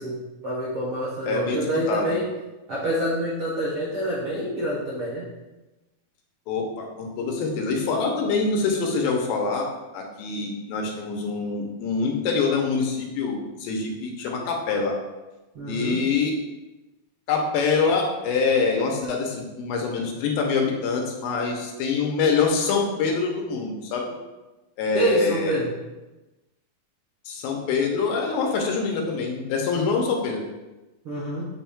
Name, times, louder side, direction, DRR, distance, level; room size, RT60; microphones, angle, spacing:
voice 1, 0.0-2.2 2.7-5.2 15.5-16.0 24.9-25.7 31.0-31.4, right 1 dB, 75° right, -7 dB, 1.2 m, -27 dB
voice 2, 1.3-1.6 1.9-2.1 6.5-9.7 9.9-15.0 15.7-16.3 17.3-24.1 24.8-25.6 27.3-30.4, left 4 dB, 80° left, 1 dB, 2.5 m, -25 dB
7.0 x 5.9 x 2.3 m, 1.1 s
omnidirectional pair, 4.3 m